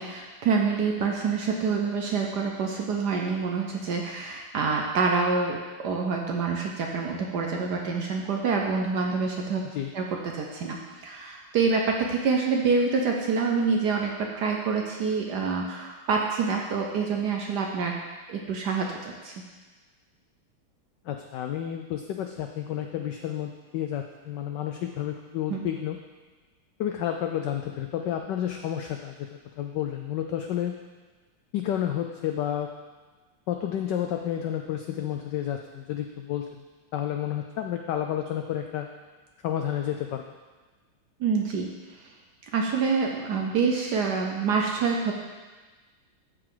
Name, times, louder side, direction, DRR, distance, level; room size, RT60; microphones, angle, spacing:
voice 1, 0.0-9.6 9.9-17.9 18.3-19.3 25.5-25.7 41.2-41.7 42.5-45.1, right 5 dB, 65° right, 1 dB, 1.1 m, -26 dB
voice 2, 21.1-26.0 26.8-29.3 29.6-30.7 31.5-32.7 33.5-36.5 36.9-38.9 39.4-40.3, left 10 dB, 85° left, 4 dB, 0.9 m, -30 dB
13.0 x 4.8 x 3.8 m, 1.3 s
omnidirectional pair, 2.4 m